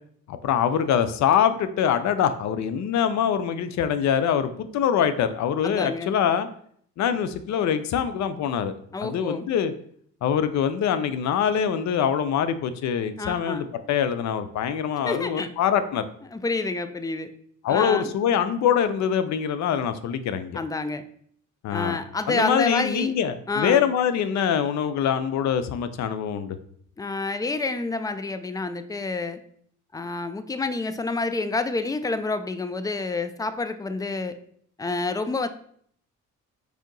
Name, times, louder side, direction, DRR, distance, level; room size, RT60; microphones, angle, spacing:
voice 1, 0.3-6.5 7.0-8.7 9.0-9.7 10.2-16.0 17.6-20.6 21.6-22.0 22.3-26.6, left 8 dB, 65° left, 11 dB, 0.5 m, -24 dB
voice 2, 5.6-6.2 8.9-9.5 13.2-13.7 15.0-15.5 16.3-17.3 17.7-18.1 20.5-21.0 21.7-23.1 23.5-23.9 27.0-29.4 29.9-34.4 34.8-35.5, left 3 dB, 15° left, 11 dB, 0.3 m, -28 dB
5.0 x 2.7 x 3.8 m, 0.62 s
cardioid pair, 90°, 30 cm